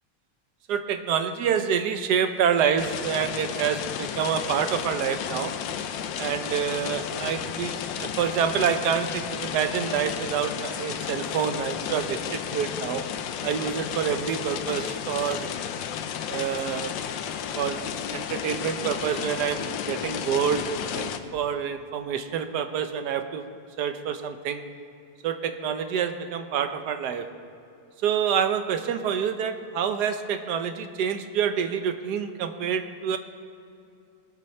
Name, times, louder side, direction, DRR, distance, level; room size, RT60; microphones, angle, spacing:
voice 1, 0.7-5.5 6.2-13.0 13.4-15.5 16.3-16.9 17.5-17.8 18.1-23.5 23.8-24.6 25.2-27.3 28.0-33.2, right 7 dB, 65° right, 8 dB, 1.3 m, -27 dB
sound 1, 2.8-21.2, left 8 dB, 80° left, 1.4 m, -33 dB
19.5 x 8.4 x 4.4 m, 2.5 s
omnidirectional pair, 2.1 m